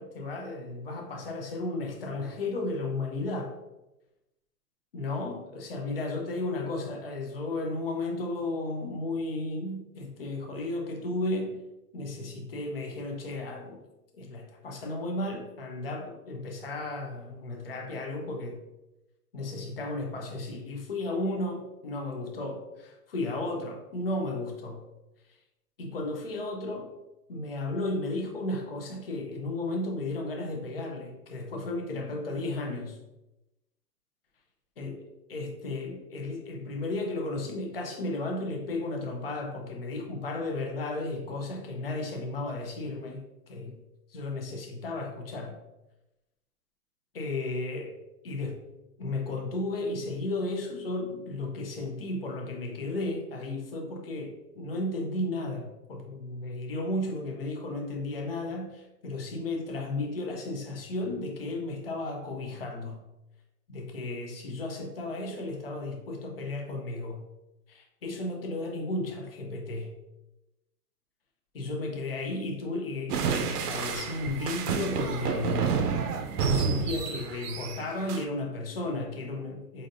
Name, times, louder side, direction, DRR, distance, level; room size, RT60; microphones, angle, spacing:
voice 1, 0.0-3.5 4.9-11.6 11.9-13.8 14.1-18.6 19.3-24.8 25.8-26.9 27.3-33.0 34.8-43.8 44.1-45.6 47.1-48.0 48.2-48.6 49.0-63.0 63.7-67.2 67.7-69.9 71.5-75.7 76.4-79.9, left 2 dB, 40° left, 2 dB, 0.4 m, -34 dB
sound 1, 73.1-78.2, right 5 dB, 70° right, 0.6 m, -29 dB
5.0 x 2.6 x 2.5 m, 0.96 s
hypercardioid pair, 170°, 48 cm